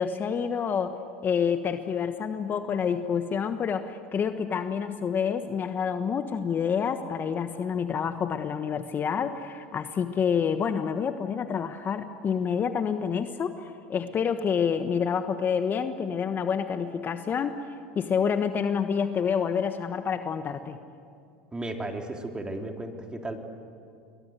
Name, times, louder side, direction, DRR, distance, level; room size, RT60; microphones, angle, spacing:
voice 1, 0.0-17.6 17.9-20.8, left 7 dB, 35° left, 9 dB, 1.3 m, -28 dB
voice 2, 21.5-23.4, right 2 dB, 15° right, 3 dB, 3.2 m, -34 dB
28.5 x 22.5 x 8.1 m, 2.4 s
hypercardioid pair, 95°, 6 cm